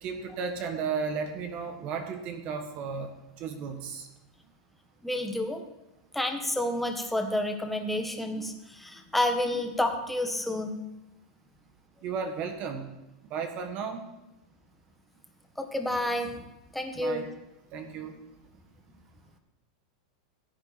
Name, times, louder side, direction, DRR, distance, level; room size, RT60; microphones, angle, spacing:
voice 1, 0.0-4.1 12.0-12.9 13.3-14.0 16.9-17.3 17.7-18.2, right 5 dB, 40° right, 6 dB, 1.4 m, -34 dB
voice 2, 5.0-5.6 6.1-10.7 15.6-16.3 16.7-17.2, left 1 dB, 5° left, 4 dB, 1.4 m, -29 dB
15.5 x 8.4 x 4.3 m, 0.97 s
supercardioid pair, 135°, 3 cm